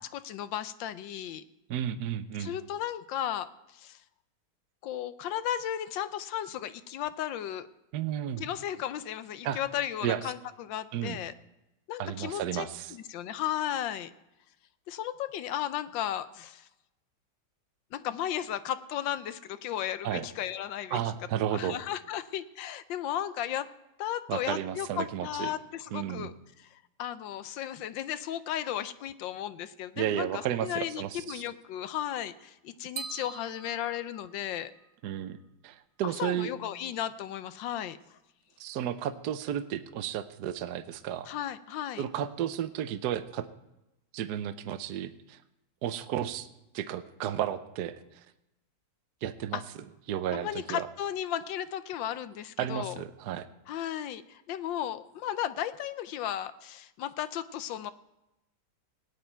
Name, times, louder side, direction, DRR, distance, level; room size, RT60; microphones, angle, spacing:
voice 1, 0.1-1.4 2.4-4.0 4.8-7.7 8.4-11.3 11.9-12.6 13.1-14.1 14.9-16.7 17.9-21.0 21.5-23.7 24.0-34.7 36.2-38.0 41.3-42.0 49.5-49.6 50.3-53.0 53.7-57.9, left 11 dB, 80° left, 13 dB, 1.4 m, -35 dB
voice 2, 1.7-2.6 7.9-8.4 9.4-9.6 10.0-10.2 10.9-11.2 12.0-13.0 20.0-20.3 20.9-21.8 24.3-25.5 25.9-26.3 30.0-31.4 35.0-35.4 35.6-36.5 38.6-41.3 42.0-43.5 44.1-45.4 45.8-46.5 46.7-48.2 49.2-49.6 50.1-50.9 52.6-53.5, right 10 dB, 65° right, 11 dB, 1.1 m, -33 dB
sound 1, 33.0-34.9, right 6 dB, 85° right, 0.5 m, -43 dB
18.0 x 9.3 x 4.5 m, 0.92 s
omnidirectional pair, 2.1 m